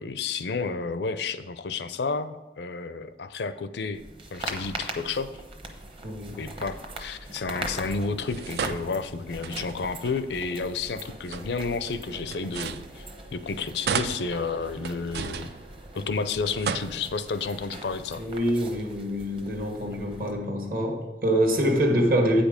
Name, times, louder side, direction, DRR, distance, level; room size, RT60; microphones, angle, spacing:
voice 1, 0.0-4.0 4.3-5.3 6.4-13.1 13.3-15.5 15.9-18.2, left 4 dB, 80° left, 12 dB, 0.5 m, -31 dB
sound 1, 3.9-20.3, right 1 dB, 30° right, 0.9 m, -41 dB
voice 2, 6.0-6.4 18.2-22.4, equal, 50° right, 2 dB, 1.4 m, -25 dB
sound 2, 8.2-10.1 11.1-13.4 13.8-16.1 16.4-17.5, right 6 dB, 70° right, 0.4 m, -35 dB
8.7 x 5.2 x 5.1 m, 1.1 s
head